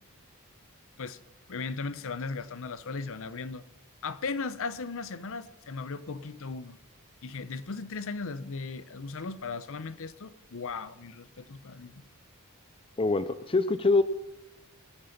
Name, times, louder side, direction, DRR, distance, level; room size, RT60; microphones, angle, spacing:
voice 1, 1.5-3.7 4.0-6.8 7.2-12.0, left 4 dB, 65° left, 0.7 m, -37 dB
voice 2, 13.0-14.0, left 3 dB, 25° left, 0.4 m, -24 dB
21.5 x 7.8 x 5.9 m
head